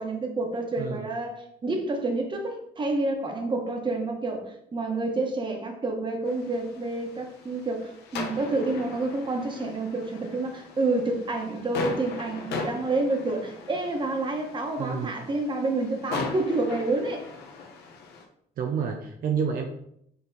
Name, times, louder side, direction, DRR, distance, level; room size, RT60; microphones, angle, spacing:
voice 1, 0.0-17.2, right 2 dB, 30° right, 3 dB, 1.4 m, -29 dB
voice 2, 0.8-1.1 14.8-15.1 18.6-19.7, right 6 dB, 60° right, 4 dB, 0.8 m, -29 dB
sound 1, 6.3-18.2, left 4 dB, 80° left, 1.3 m, -39 dB
7.0 x 3.8 x 4.1 m, 0.71 s
cardioid pair, 110°, 17 cm